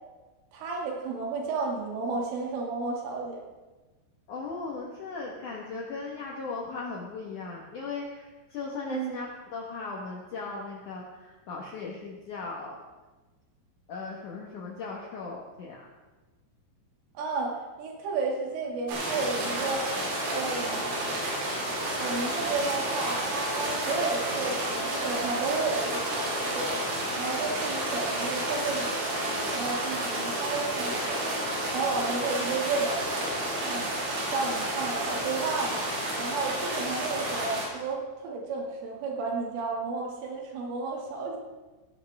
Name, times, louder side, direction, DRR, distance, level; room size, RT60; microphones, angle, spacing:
voice 1, 0.5-3.4 8.9-9.3 17.1-19.9 20.3-20.9 22.0-26.7 27.2-31.4 31.7-33.0 33.6-33.9 34.3-35.9 36.2-41.4, right 4 dB, 75° right, -1 dB, 4.9 m, -32 dB
voice 2, 4.3-12.8 13.9-15.9, left 4 dB, 75° left, -2 dB, 1.8 m, -37 dB
sound 1, 18.9-37.7, right 1 dB, 90° right, 7.0 m, -30 dB
17.5 x 16.0 x 3.6 m, 1.2 s
omnidirectional pair, 5.9 m